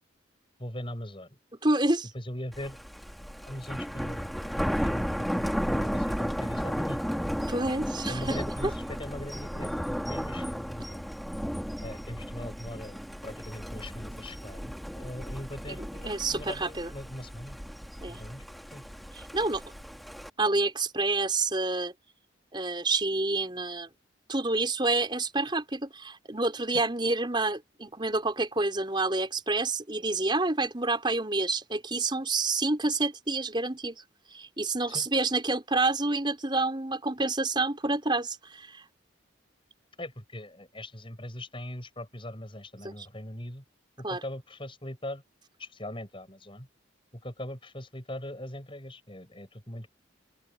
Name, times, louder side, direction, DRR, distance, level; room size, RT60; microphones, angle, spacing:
voice 1, 0.6-1.4 2.1-2.8 3.5-7.0 8.1-11.0 11.8-17.6 18.1-18.8 26.7-26.8 34.9-35.1 40.0-43.6 44.0-45.2 45.6-46.7 47.1-49.9, left 1 dB, 25° left, 7.5 m, -40 dB
voice 2, 1.6-2.1 7.5-8.4 16.0-16.9 18.0-18.2 19.3-19.6 20.4-21.9 22.5-23.9 24.3-34.0 34.3-38.8 42.8-42.9 44.0-44.2, right 2 dB, 25° right, 4.9 m, -28 dB
Thunder, 2.5-20.3, equal, ahead, 1.8 m, -34 dB
open air
head